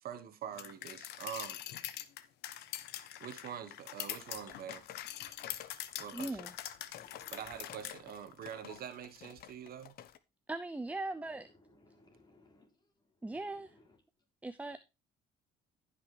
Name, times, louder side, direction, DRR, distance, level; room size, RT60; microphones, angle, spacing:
voice 1, 0.0-1.6 3.2-4.8 6.0-6.4 7.3-9.9, right 9 dB, 60° right, 1.4 m, -45 dB
sound 1, 0.6-8.0, left 13 dB, 85° left, 1.0 m, -44 dB
sound 2, 4.1-10.2, left 11 dB, 60° left, 0.9 m, -53 dB
voice 2, 6.1-6.5 10.5-11.5 13.2-13.7 14.4-14.8, right 2 dB, 10° right, 0.5 m, -39 dB
voice 3, 6.9-7.8 8.7-8.8 11.3-14.0, left 3 dB, 25° left, 3.5 m, -63 dB
14.5 x 5.9 x 3.3 m
cardioid pair, 110°, 17 cm